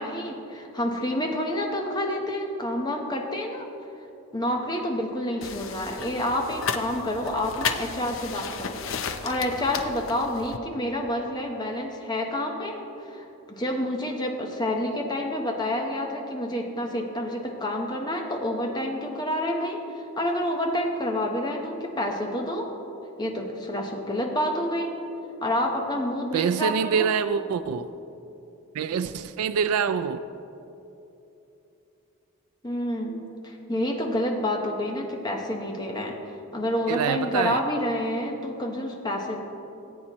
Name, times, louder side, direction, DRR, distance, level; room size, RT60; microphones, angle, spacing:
voice 1, 0.0-3.7 4.3-8.8 9.2-22.7 23.2-24.9 25.4-27.1 32.6-36.2 36.5-39.4, left 1 dB, 20° left, 1 dB, 0.9 m, -28 dB
sound 1, 5.4-10.6, left 6 dB, 65° left, 0.6 m, -34 dB
voice 2, 26.3-27.9 28.7-30.2 36.9-37.6, right 7 dB, 90° right, 11 dB, 0.3 m, -25 dB
18.0 x 8.5 x 3.0 m, 2.9 s
head